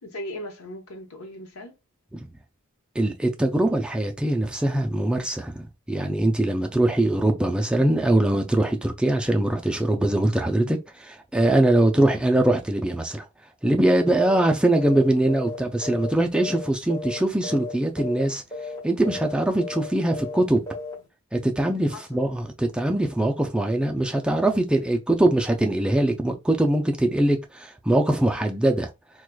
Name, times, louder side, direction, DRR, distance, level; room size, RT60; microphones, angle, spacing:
voice 1, 0.0-1.8 21.9-22.2, left 1 dB, 85° left, 0.9 m, -38 dB
voice 2, 3.0-13.3 13.6-18.4 18.8-20.6 21.3-28.9, right 1 dB, 5° right, 0.3 m, -22 dB
sound 1, 14.2-14.5 14.7-15.0 15.3-16.6 16.9-17.2 17.4-17.7 18.0-18.2 18.5-18.8 19.0-19.3 19.6-19.9 20.1-20.4 20.7-20.9, left 3 dB, 20° left, 1.3 m, -34 dB
4.6 x 2.2 x 2.2 m
head